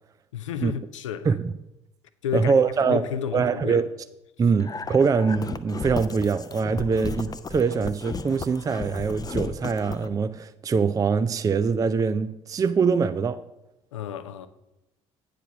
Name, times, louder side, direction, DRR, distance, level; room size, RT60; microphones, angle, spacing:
voice 1, 0.3-1.3 2.2-2.5 2.8-3.8 13.9-14.5, left 9 dB, 80° left, 0.5 m, -31 dB
voice 2, 2.3-3.0 3.3-3.9 4.4-13.4, right 5 dB, 20° right, 0.4 m, -23 dB
sound 1, 4.6-10.1, left 4 dB, 25° left, 0.6 m, -34 dB
8.9 x 5.0 x 6.0 m
figure-of-eight pair, 55°, 16 cm